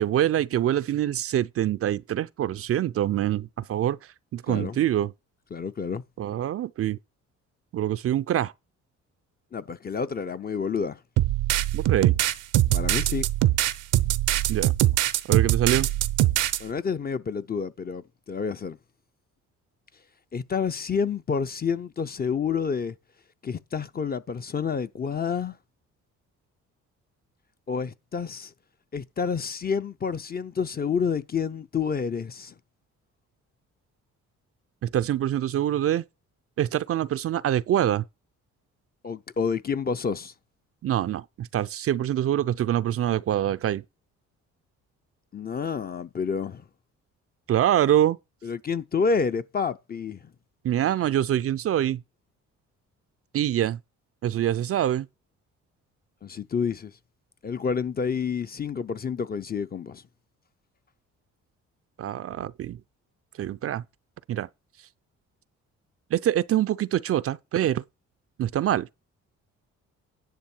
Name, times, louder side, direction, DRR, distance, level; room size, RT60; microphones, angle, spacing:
voice 1, 0.0-4.0 4.3-5.1 6.2-7.0 7.7-8.5 11.7-12.2 14.5-14.7 15.3-15.9 34.8-36.0 36.6-38.0 40.8-43.8 47.5-48.2 50.6-52.0 53.3-53.8 54.2-55.1 62.0-62.8 63.4-63.8 64.3-64.5 66.1-67.8 68.4-68.9, right 11 dB, 50° right, 0.4 m, -25 dB
voice 2, 5.5-6.0 9.5-11.0 12.7-13.3 16.6-18.8 20.3-22.9 23.4-25.6 27.7-28.5 28.9-32.5 39.0-40.3 45.3-46.6 48.4-50.3 56.2-56.9 57.4-60.0, left 6 dB, 30° left, 0.6 m, -29 dB
sound 1, 11.2-16.6, right 14 dB, 85° right, 0.7 m, -22 dB
10.5 x 6.4 x 4.5 m
cardioid pair, 90°, 30 cm